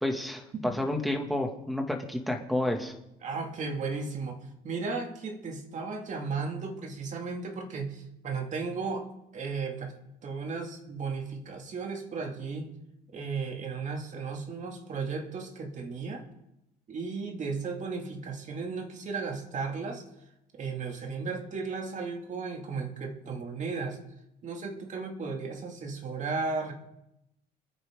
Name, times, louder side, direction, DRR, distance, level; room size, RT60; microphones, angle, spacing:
voice 1, 0.0-2.9, left 1 dB, ahead, 1 dB, 2.3 m, -30 dB
voice 2, 3.2-4.4 4.6-9.9 10.2-12.7 13.1-16.3 16.9-20.0 20.5-24.0 24.4-26.7, right 4 dB, 45° right, 2 dB, 2.6 m, -35 dB
27.5 x 9.6 x 3.9 m, 0.87 s
cardioid pair, 110°, 17 cm